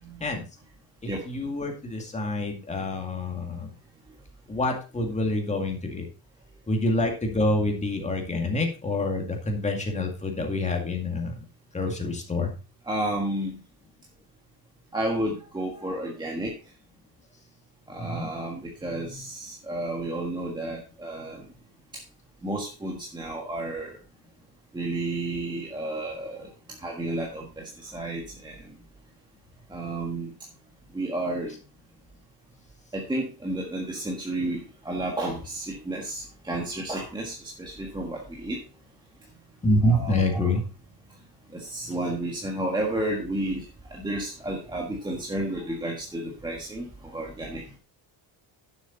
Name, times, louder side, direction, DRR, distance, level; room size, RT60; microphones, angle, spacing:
voice 1, 1.0-3.7 4.5-6.1 6.7-11.3 11.7-12.5 18.0-18.3 39.6-40.6, left 1 dB, 15° left, 2 dB, 2.2 m, -27 dB
voice 2, 12.9-13.6 14.9-16.5 17.9-21.5 21.9-22.0 22.4-24.0 24.7-26.5 26.8-28.6 29.7-30.3 30.9-31.5 32.9-38.6 39.8-40.5 41.5-47.6, right 1 dB, 10° right, -1 dB, 1.5 m, -32 dB
11.0 x 7.3 x 3.9 m, 0.34 s
cardioid pair, 165°, 43 cm